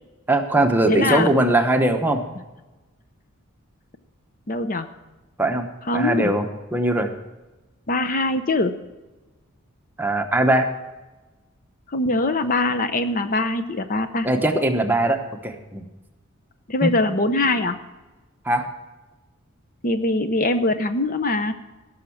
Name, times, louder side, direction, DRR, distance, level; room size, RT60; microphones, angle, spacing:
voice 1, 0.3-2.2 5.4-5.7 5.9-6.5 6.7-7.1 10.0-10.7 14.2-15.2 15.4-15.8 16.8-16.9 18.4-18.7, right 1 dB, 10° right, 4 dB, 1.0 m, -20 dB
voice 2, 0.9-1.3 4.5-4.9 5.9-6.3 7.9-8.8 11.9-14.3 16.7-17.8 19.8-21.5, left 2 dB, 40° left, 9 dB, 0.7 m, -22 dB
17.0 x 6.4 x 7.1 m, 1.1 s
head